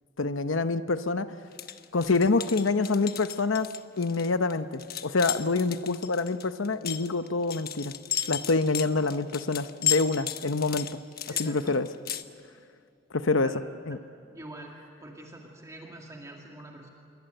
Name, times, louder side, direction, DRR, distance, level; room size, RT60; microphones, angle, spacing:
voice 1, 0.2-1.3 1.9-3.7 4.0-7.9 8.3-10.9 11.4-11.9 13.1-13.5 13.9-14.0, left 3 dB, 80° left, 11 dB, 0.9 m, -26 dB
sound 1, 1.5-12.2, left 10 dB, 50° left, 1.0 m, -34 dB
voice 2, 11.3-11.8 13.3-13.6 13.9-16.9, right 1 dB, 15° right, 0 dB, 2.3 m, -45 dB
27.5 x 23.0 x 7.9 m, 2.5 s
head